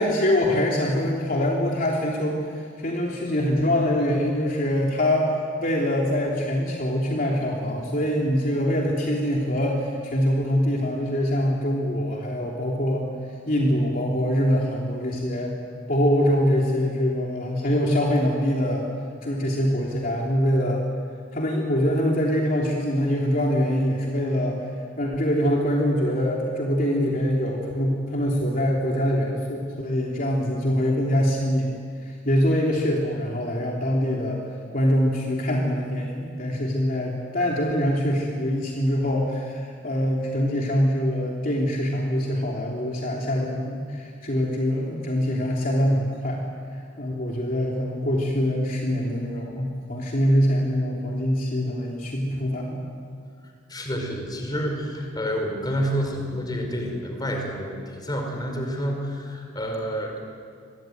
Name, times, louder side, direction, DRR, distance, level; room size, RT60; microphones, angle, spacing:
voice 1, 0.0-5.3 5.6-13.0 13.5-15.5 15.9-18.8 19.2-20.8 21.3-24.6 25.0-31.7 32.0-34.4 34.7-46.5 47.0-52.9, equal, 45° left, -2 dB, 3.2 m, -24 dB
voice 2, 53.7-60.2, equal, 20° left, 3 dB, 4.9 m, -29 dB
26.5 x 23.0 x 9.3 m, 2.2 s
head